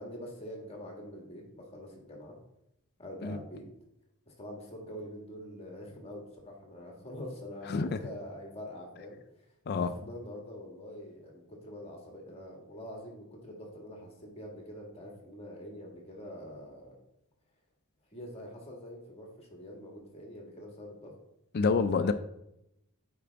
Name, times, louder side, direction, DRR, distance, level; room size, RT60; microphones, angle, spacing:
voice 1, 0.0-2.4 3.0-3.6 4.3-9.2 9.8-16.9 18.1-21.1, equal, 30° left, 0 dB, 1.7 m, -45 dB
voice 2, 7.7-8.0 9.7-9.9 21.5-22.1, left 4 dB, 50° left, 10 dB, 0.4 m, -27 dB
8.6 x 4.8 x 3.5 m, 0.83 s
head